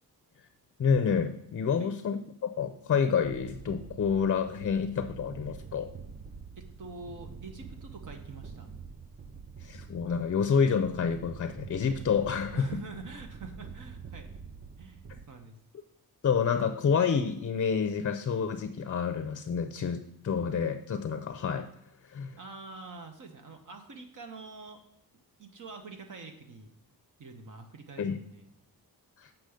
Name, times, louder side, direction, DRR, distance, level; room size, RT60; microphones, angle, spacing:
voice 1, 0.8-5.9 9.6-12.7 16.2-21.7 22.1-22.4 28.0-28.2 29.2-29.3, left 6 dB, 40° left, 9 dB, 0.5 m, -28 dB
sound 1, 3.2-15.3, right 5 dB, 30° right, 0.3 m, -46 dB
voice 2, 6.6-8.7 12.5-14.4 14.8-15.6 22.4-24.8 25.4-26.7 27.2-28.5, right 4 dB, 55° right, 5 dB, 1.3 m, -46 dB
7.6 x 6.0 x 5.0 m, 0.79 s
wide cardioid pair, 165°, 37 cm